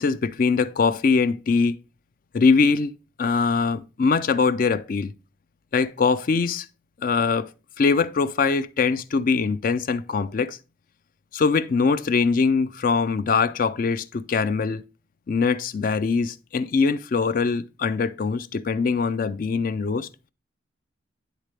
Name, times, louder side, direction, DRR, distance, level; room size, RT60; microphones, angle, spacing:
voice 1, 0.0-1.8 2.3-2.9 3.2-5.1 5.7-6.7 7.0-7.5 7.8-10.6 11.3-14.8 15.3-20.1, left 4 dB, 45° left, 0.3 m, -22 dB
10.5 x 4.1 x 3.2 m
head